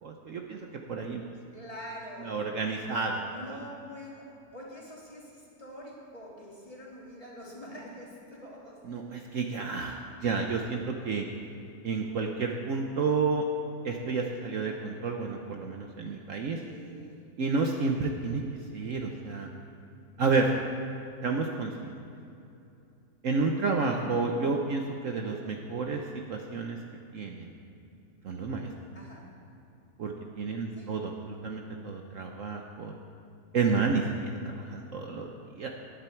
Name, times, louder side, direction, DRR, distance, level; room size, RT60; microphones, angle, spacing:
voice 1, 0.0-1.2 2.2-3.6 8.9-11.3 11.8-13.4 13.8-16.6 17.4-18.4 18.7-19.5 20.2-20.6 21.2-21.9 23.2-26.8 27.1-27.5 28.2-28.7 30.0-32.9 33.5-35.7, right 4 dB, 60° right, 2 dB, 1.1 m, -30 dB
voice 2, 1.5-2.5 3.3-4.3 4.5-8.8 16.6-17.2 28.9-29.2 30.7-30.9, equal, 20° left, -5 dB, 2.9 m, -45 dB
18.5 x 11.0 x 4.5 m, 2.7 s
omnidirectional pair, 1.7 m